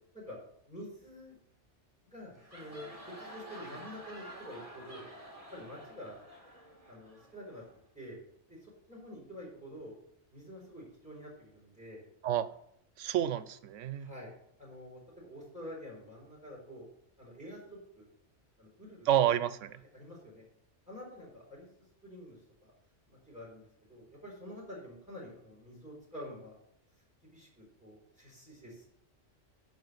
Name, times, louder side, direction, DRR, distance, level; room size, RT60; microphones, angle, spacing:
voice 1, 0.7-1.4 2.0-2.9 3.2-5.1 5.5-6.2 6.9-7.6 7.9-8.2 8.5-9.9 10.3-12.0 14.0-14.3 14.6-16.9 17.2-18.1 18.6-19.1 19.9-20.4 20.9-21.7 22.0-22.4 22.6-22.7 23.1-26.5 27.2-28.8, equal, 5° right, -6 dB, 4.8 m, -48 dB
sound 1, 2.2-7.8, right 1 dB, 30° right, 1.8 m, -50 dB
voice 2, 13.0-14.1 19.1-19.8, right 11 dB, 85° right, 14 dB, 1.0 m, -29 dB
10.5 x 4.8 x 8.0 m, 0.72 s
omnidirectional pair, 1.2 m